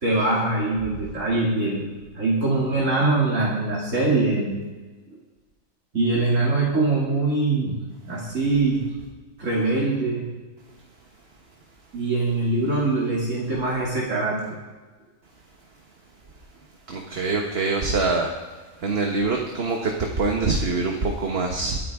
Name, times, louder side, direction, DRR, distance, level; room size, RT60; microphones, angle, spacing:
voice 1, 0.0-1.9 2.1-4.6 5.9-7.8 8.1-8.9 9.4-10.2 11.9-14.4, right 2 dB, 65° right, -5 dB, 2.8 m, -23 dB
voice 2, 16.9-18.3 18.8-21.8, right 3 dB, 50° right, 1 dB, 1.4 m, -24 dB
22.0 x 9.2 x 3.6 m, 1.3 s
omnidirectional pair, 1.4 m